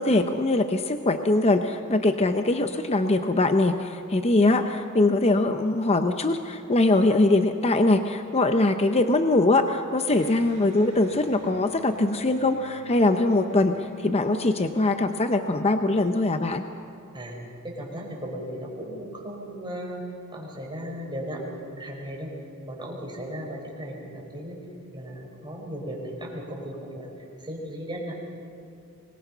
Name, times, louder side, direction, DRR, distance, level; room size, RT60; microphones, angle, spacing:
voice 1, 0.0-13.8 14.0-16.6, left 2 dB, 30° left, 7 dB, 0.7 m, -22 dB
Electric guitar, 10.1-15.6, left 5 dB, 65° right, 4.8 m, -45 dB
voice 2, 17.6-20.0 20.3-22.3 22.6-24.6 24.9-27.1 27.4-28.1, equal, 20° right, -2 dB, 4.9 m, -36 dB
24.0 x 21.0 x 5.6 m, 2.7 s
head